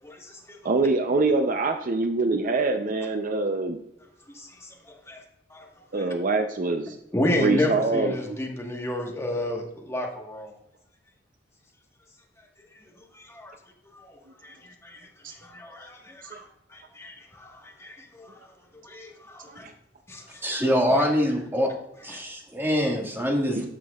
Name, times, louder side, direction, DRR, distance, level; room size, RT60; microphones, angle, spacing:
voice 1, 0.0-0.6 4.3-4.7 5.1-5.2 5.5-5.7 5.9-6.0 7.1-10.5 13.1-13.5 13.9-14.1 14.4-15.0 15.4-16.4 16.7-18.4 18.8-19.7 20.1-20.4 20.9-21.0 22.1-22.2, left 1 dB, 15° left, 0 dB, 1.4 m, -31 dB
voice 2, 0.6-3.8 5.9-7.0 7.4-8.4 15.2-15.3 16.2-16.4 19.5-19.7 23.6-23.7, right 3 dB, 45° right, 6 dB, 0.5 m, -25 dB
voice 3, 20.4-21.7 22.0-23.7, equal, 10° right, 0 dB, 1.7 m, -24 dB
14.0 x 6.0 x 2.3 m, 0.79 s
head